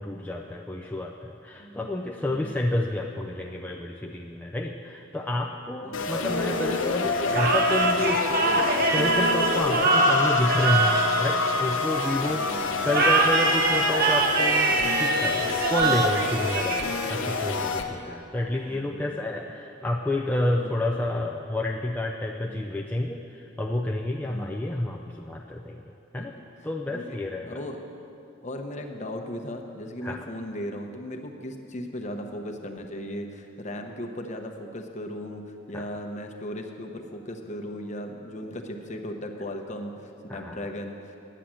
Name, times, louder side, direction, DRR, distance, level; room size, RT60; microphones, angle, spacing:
voice 1, 0.0-26.3 26.6-27.6 30.0-30.3 35.7-35.8 40.3-40.7, left 1 dB, 10° left, 0 dB, 0.4 m, -30 dB
sound 1, 5.9-17.8, left 4 dB, 85° left, 0.8 m, -27 dB
sound 2, 7.3-12.1 12.9-17.3, right 3 dB, 50° right, 1.0 m, -24 dB
voice 2, 12.1-13.0 18.7-19.1 20.6-20.8 22.4-22.6 24.2-24.6 26.2-26.3 26.9-27.2 27.5-27.8 28.4-41.2, left 1 dB, 35° left, 4 dB, 0.9 m, -37 dB
10.0 x 8.4 x 7.6 m, 2.7 s
head